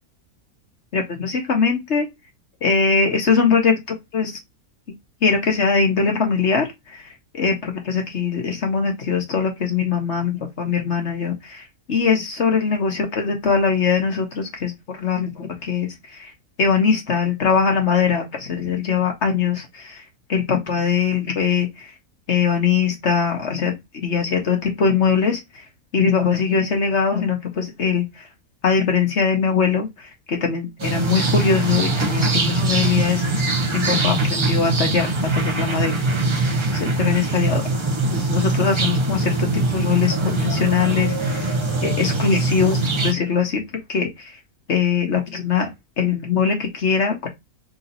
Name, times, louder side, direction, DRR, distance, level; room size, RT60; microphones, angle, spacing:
voice 1, 0.9-2.1 2.6-4.3 5.2-7.0 7.3-11.6 11.9-15.9 16.2-16.3 16.6-20.0 20.3-21.7 22.3-25.4 25.9-28.0 28.6-33.2 33.7-35.1 35.3-36.0 36.7-37.6 38.1-41.5 41.8-43.6 43.9-44.3 44.7-45.7 46.0-47.3, left 5 dB, 50° left, 1.5 m, -21 dB
sound 1, 30.8-43.1, right 2 dB, 30° right, 0.5 m, -22 dB
3.8 x 2.8 x 3.9 m
omnidirectional pair, 1.5 m